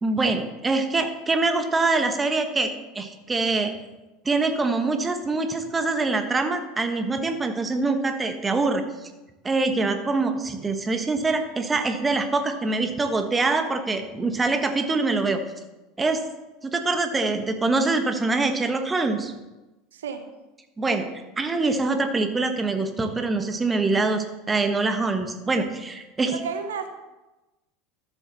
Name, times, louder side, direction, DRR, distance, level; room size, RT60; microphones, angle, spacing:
voice 1, 0.0-3.7 4.2-8.8 9.4-15.4 16.0-16.2 16.6-19.3 20.8-21.1 21.4-26.3, right 3 dB, 20° right, 7 dB, 1.3 m, -24 dB
voice 2, 19.9-20.3 26.3-26.9, right 6 dB, 80° right, 7 dB, 0.9 m, -32 dB
13.0 x 7.4 x 4.1 m, 1.1 s
hypercardioid pair, 80°, 0 cm